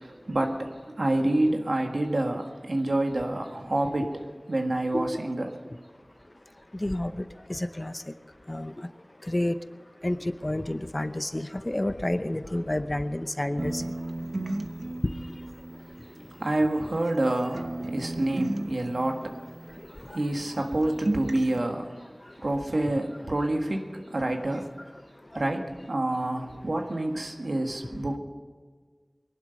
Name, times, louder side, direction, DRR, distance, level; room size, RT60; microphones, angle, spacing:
voice 1, 0.0-4.2 4.5-5.5 16.3-19.7 20.1-22.0 22.4-24.7 25.3-28.2, right 1 dB, 80° right, 3 dB, 1.6 m, -28 dB
voice 2, 6.8-7.2 7.5-8.0 8.5-8.9 9.2-9.6 10.0-13.8 20.1-20.2, left 1 dB, 35° left, 11 dB, 0.8 m, -29 dB
sound 1, 13.6-17.2 17.5-20.3 20.6-21.6, right 2 dB, 65° right, 0.9 m, -35 dB
21.5 x 11.5 x 5.3 m, 1.5 s
wide cardioid pair, 40°, 0 cm